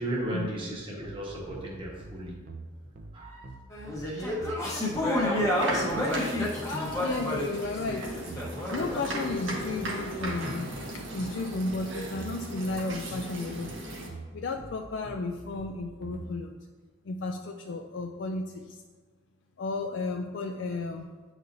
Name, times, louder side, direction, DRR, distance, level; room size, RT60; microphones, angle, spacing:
voice 1, 0.0-2.4 3.1-3.5, right 1 dB, 25° right, -3 dB, 1.1 m, -35 dB
sound 1, 1.0-16.3, right 3 dB, 50° right, 0.6 m, -45 dB
sound 2, 3.7-9.0, left 1 dB, 15° left, 0.9 m, -29 dB
sound 3, 5.5-14.1, right 1 dB, 75° right, 1.2 m, -37 dB
voice 2, 6.7-8.2 8.7-10.7 11.1-13.8 14.3-16.6 17.0-18.8 19.6-21.1, left 3 dB, 65° left, 3 dB, 0.3 m, -33 dB
9.1 x 4.1 x 2.6 m, 1.5 s
head